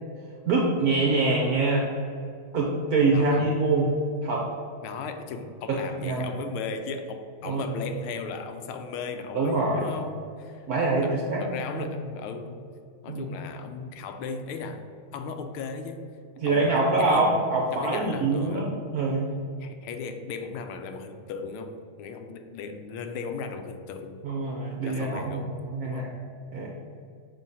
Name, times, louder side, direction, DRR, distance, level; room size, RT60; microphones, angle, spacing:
voice 1, 0.5-1.9 2.5-4.0 4.2-4.5 5.7-6.3 7.4-7.6 9.3-9.9 10.7-11.5 11.7-11.9 13.1-13.2 16.4-19.3 24.2-25.4 25.7-26.1 26.5-26.7, right 3 dB, 65° right, -1 dB, 0.9 m, -25 dB
voice 2, 3.1-3.5 4.8-10.7 11.0-12.6 13.0-14.9 15.1-16.1 16.5-17.3 17.7-18.7 19.6-24.2 24.9-25.5 25.8-26.1, left 5 dB, 80° left, 7 dB, 1.4 m, -37 dB
6.2 x 3.7 x 5.5 m, 2.4 s
omnidirectional pair, 2.3 m